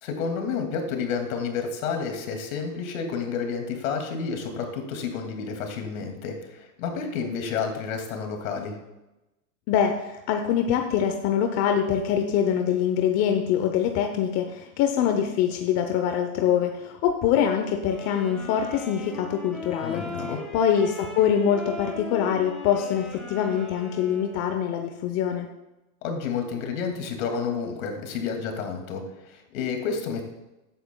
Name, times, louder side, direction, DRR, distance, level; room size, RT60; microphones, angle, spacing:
voice 1, 0.0-8.8 19.8-20.4 26.0-30.2, left 5 dB, 65° left, 4 dB, 2.4 m, -30 dB
voice 2, 9.7-20.0 20.5-25.5, left 9 dB, 35° left, 5 dB, 0.8 m, -24 dB
sound 1, 17.8-24.4, left 2 dB, ahead, 3.0 m, -39 dB
13.0 x 9.3 x 2.3 m, 0.97 s
hypercardioid pair, 125°, 43 cm